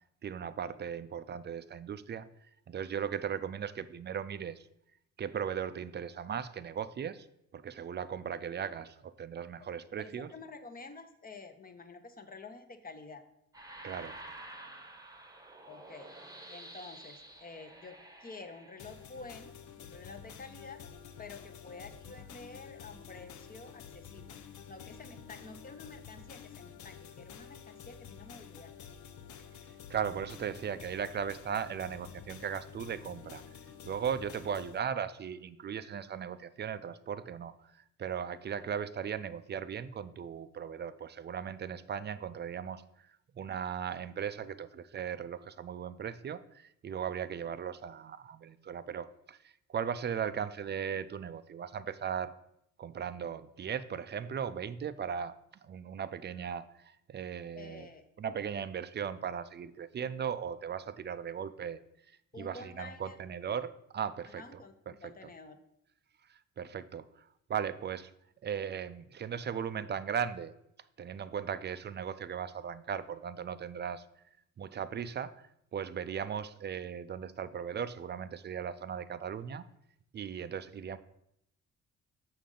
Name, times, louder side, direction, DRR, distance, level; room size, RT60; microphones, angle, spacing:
voice 1, 0.2-2.3 2.7-4.7 5.2-7.3 7.5-10.3 13.8-14.2 29.9-33.4 33.8-37.5 38.0-42.8 43.4-49.4 49.7-52.3 52.8-57.9 58.2-61.8 62.4-64.6 64.9-65.1 66.6-67.1 67.5-68.1 68.4-70.5 71.0-74.0 74.6-75.3 75.7-79.6 80.1-81.0, right 8 dB, 35° right, 13 dB, 0.4 m, -37 dB
voice 2, 10.0-13.2 15.7-16.1 16.5-20.8 21.2-24.4 24.7-28.7 57.5-58.0 62.3-63.2 64.3-65.6, left 3 dB, 30° left, 7 dB, 0.8 m, -49 dB
sound 1, 13.5-19.2, right 2 dB, 10° right, 0.9 m, -50 dB
sound 2, 18.8-34.8, left 7 dB, 75° left, 0.7 m, -50 dB
6.7 x 6.2 x 3.8 m, 0.77 s
cardioid pair, 90°, 30 cm